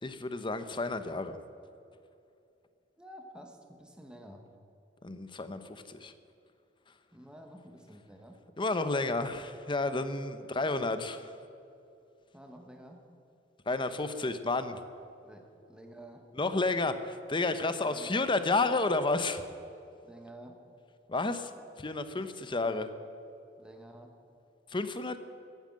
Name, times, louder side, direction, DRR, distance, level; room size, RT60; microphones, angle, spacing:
voice 1, 0.0-1.4 5.0-6.1 8.6-11.4 13.7-14.8 16.4-19.4 21.1-21.5 21.8-22.9 24.7-25.2, left 3 dB, 25° left, 10 dB, 0.8 m, -31 dB
voice 2, 3.0-4.5 7.1-8.4 12.3-13.0 15.2-16.3 17.8-18.1 20.0-20.6 22.2-22.3 23.6-24.2, equal, 5° right, 3 dB, 1.2 m, -50 dB
15.0 x 9.2 x 7.5 m, 2.6 s
head